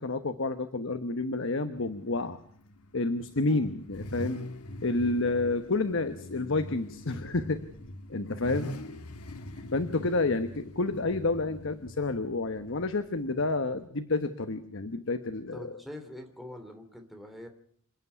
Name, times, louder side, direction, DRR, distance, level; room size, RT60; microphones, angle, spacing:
voice 1, 0.0-2.4 2.9-4.4 4.8-7.6 8.1-8.7 9.7-15.7, left 3 dB, 60° left, 10 dB, 1.1 m, -29 dB
Car / Idling / Accelerating revving vroom, 1.8-13.9, left 1 dB, 85° left, 1.7 m, -43 dB
voice 2, 15.5-17.5, left 1 dB, ahead, 4 dB, 3.0 m, -44 dB
28.0 x 9.7 x 9.8 m, 0.62 s
head